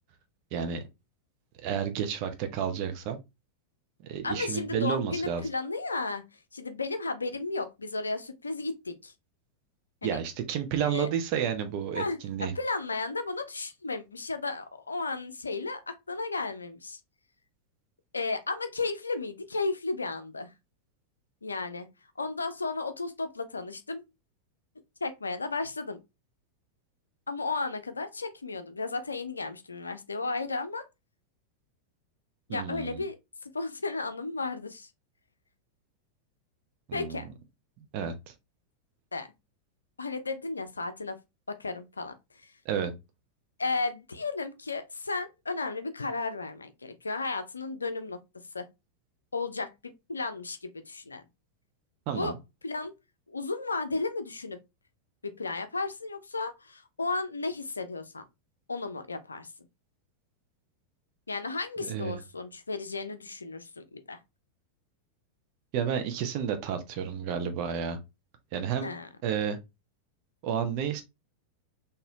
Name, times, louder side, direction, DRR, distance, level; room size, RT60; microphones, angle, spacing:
voice 1, 1.6-3.2 4.0-5.4 10.0-12.5 32.5-33.0 36.9-37.3 37.8-38.3 42.6-42.9 52.1-52.4 61.8-62.2 65.7-68.0 68.5-68.9 69.2-69.6 70.4-71.0, right 8 dB, 45° right, 0.7 m, -31 dB
voice 2, 4.2-6.2 6.5-9.1 10.0-10.2 10.8-11.1 11.9-17.0 18.1-20.5 21.4-21.9 22.2-24.0 25.0-26.0 27.3-30.9 32.5-33.2 33.5-34.9 36.9-37.3 39.1-39.3 40.0-41.2 41.5-42.5 43.6-48.2 48.5-48.7 49.3-51.2 52.1-52.3 52.6-52.9 53.3-54.6 55.2-58.2 58.7-59.5 61.3-64.2 68.8-69.1, left 3 dB, 75° left, 0.5 m, -34 dB
3.9 x 2.7 x 2.8 m
figure-of-eight pair, 90°, 0 cm